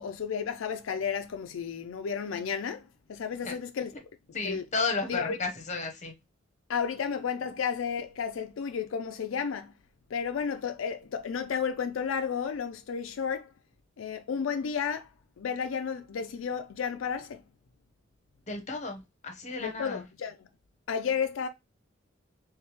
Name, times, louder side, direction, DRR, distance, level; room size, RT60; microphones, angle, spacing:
voice 1, 0.0-3.9 4.3-4.7 5.1-5.4 6.7-9.7 10.1-13.5 14.0-15.1 15.4-17.4 19.6-20.5 20.9-21.5, left 6 dB, 90° left, 0.4 m, -32 dB
voice 2, 4.3-6.1 18.5-20.0, left 4 dB, 40° left, 1.0 m, -33 dB
3.3 x 3.2 x 3.1 m
head